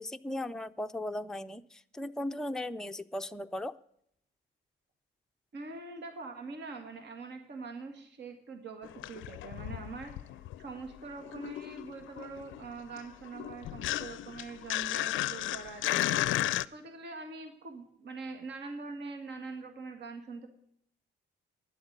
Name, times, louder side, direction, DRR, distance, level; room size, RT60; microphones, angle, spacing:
voice 1, 0.0-3.7, left 1 dB, 5° left, 7 dB, 0.5 m, -37 dB
voice 2, 5.5-20.5, right 4 dB, 60° right, 5 dB, 1.9 m, -44 dB
sound 1, 8.8-10.8 11.0-16.7, left 15 dB, 80° left, 0.4 m, -34 dB
11.0 x 8.0 x 8.0 m, 0.71 s
cardioid pair, 90°, 20 cm